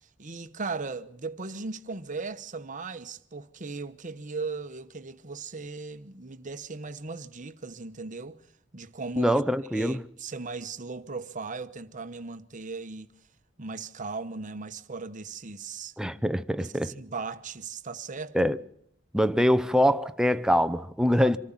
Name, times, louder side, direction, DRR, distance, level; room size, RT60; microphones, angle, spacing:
voice 1, 0.2-8.4 8.7-9.4 9.7-13.1 13.6-15.9 16.6-18.5, right 4 dB, 40° right, 1.1 m, -37 dB
voice 2, 9.2-10.0 16.0-16.9 18.3-18.6 19.1-21.4, equal, 5° right, 0.7 m, -24 dB
25.5 x 14.0 x 7.3 m
head